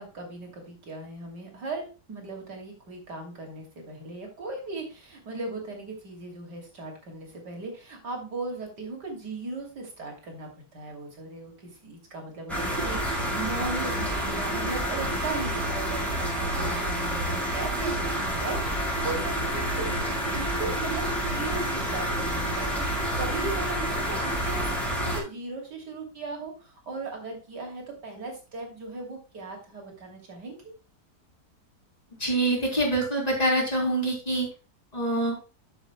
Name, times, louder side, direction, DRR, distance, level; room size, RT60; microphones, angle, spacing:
voice 1, 0.0-30.6, right 3 dB, 75° right, 1 dB, 3.4 m, -37 dB
sound 1, 12.5-25.2, right 1 dB, ahead, 5.6 m, -28 dB
voice 2, 32.2-34.5 34.9-35.4, right 1 dB, 20° left, -2 dB, 3.6 m, -25 dB
13.5 x 7.1 x 2.2 m, 0.33 s
omnidirectional pair, 1.8 m